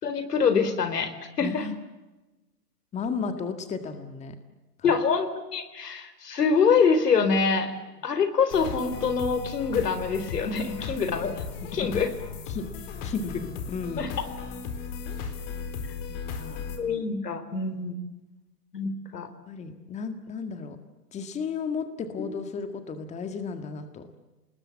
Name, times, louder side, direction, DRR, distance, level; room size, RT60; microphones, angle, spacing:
voice 1, 0.0-1.1 1.4-1.6 4.8-7.7 8.0-11.3 11.7-12.1 14.0-14.3 16.8-17.9 18.7-19.3, left 5 dB, 80° left, 11 dB, 4.2 m, -25 dB
voice 2, 1.4-1.8 2.9-4.4 4.8-4.9 12.5-14.0 16.1-16.8 19.5-20.8 21.1-24.1, left 5 dB, 15° left, 9 dB, 1.8 m, -34 dB
sound 1, 8.5-16.8, left 5 dB, 40° left, 4.3 m, -36 dB
29.0 x 20.0 x 8.5 m, 1.1 s
hypercardioid pair, 135°, 47 cm